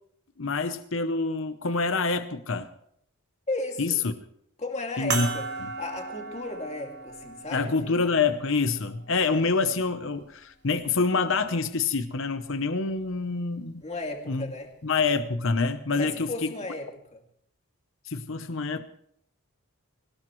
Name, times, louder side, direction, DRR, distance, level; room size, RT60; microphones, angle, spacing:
voice 1, 0.4-2.7 3.8-4.1 5.0-5.3 5.6-5.7 7.5-13.8 14.3-14.5 14.8-16.5 18.0-18.8, left 4 dB, 60° left, 9 dB, 0.8 m, -26 dB
voice 2, 3.5-4.0 4.6-5.5 5.8-7.9 13.8-14.7 15.9-16.9 17.1-17.2, left 2 dB, 30° left, 2 dB, 2.4 m, -34 dB
sound 1, 5.1-9.9 10.7-10.8 12.9-13.0, right 4 dB, 50° right, 2.8 m, -36 dB
21.5 x 18.5 x 3.2 m, 0.70 s
head